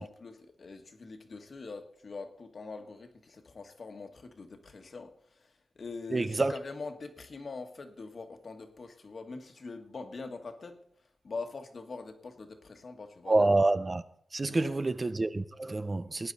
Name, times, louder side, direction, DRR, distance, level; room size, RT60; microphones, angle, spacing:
voice 1, 0.0-13.5 14.5-14.8, left 3 dB, 50° left, 1.5 m, -43 dB
voice 2, 6.1-6.5 13.3-14.0 14.3-16.3, right 2 dB, 30° right, 0.5 m, -27 dB
19.0 x 10.0 x 4.1 m
wide cardioid pair, 135°, 0 cm